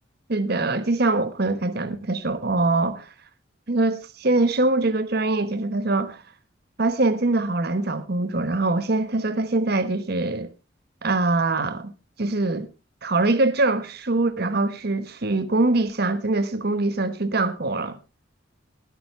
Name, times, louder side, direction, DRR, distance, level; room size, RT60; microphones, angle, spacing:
voice 1, 0.3-3.1 3.7-6.2 6.8-10.5 11.0-11.9 12.2-12.7 13.0-18.0, right 2 dB, 55° right, 1.1 m, -23 dB
19.0 x 8.9 x 3.3 m
head